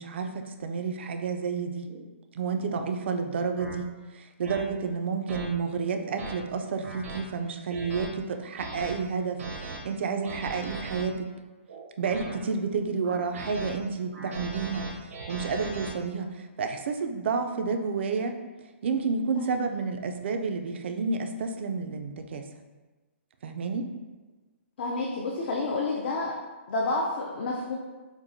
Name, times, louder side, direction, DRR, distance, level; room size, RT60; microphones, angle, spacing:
voice 1, 0.0-1.9 2.3-11.3 12.0-18.4 18.8-22.5 23.4-23.9, right 5 dB, 60° right, 6 dB, 0.3 m, -30 dB
sound 1, 1.9-2.0 2.7-2.9 3.6-3.7 4.4-4.6 5.3-5.5 6.0-6.3 6.8-7.2 7.7-8.1 8.6-8.9 9.4-9.8 10.2-11.0 11.7-12.4 13.0-13.7 14.1-15.9, right 3 dB, 85° right, 0.7 m, -39 dB
voice 2, 24.8-26.3 26.7-27.7, left 2 dB, 50° left, -2 dB, 0.4 m, -29 dB
4.3 x 2.1 x 2.6 m, 1.2 s
hypercardioid pair, 160°, 7 cm